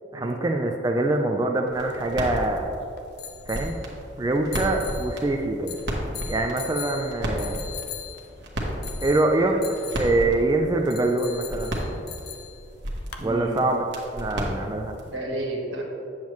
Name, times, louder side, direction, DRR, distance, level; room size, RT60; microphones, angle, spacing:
voice 1, 0.1-2.7 3.5-3.8 4.2-5.8 6.3-7.6 9.0-9.6 9.9-11.7 13.2-13.8 14.1-15.0, right 2 dB, 20° right, 3 dB, 0.4 m, -24 dB
sound 1, 1.7-13.3, left 8 dB, 60° left, 0.7 m, -41 dB
sound 2, 1.7-15.2, equal, 65° right, 1.3 m, -34 dB
voice 2, 13.2-13.6 15.0-15.8, right 1 dB, 85° right, -1 dB, 1.6 m, -32 dB
8.7 x 7.3 x 3.1 m, 2.5 s
head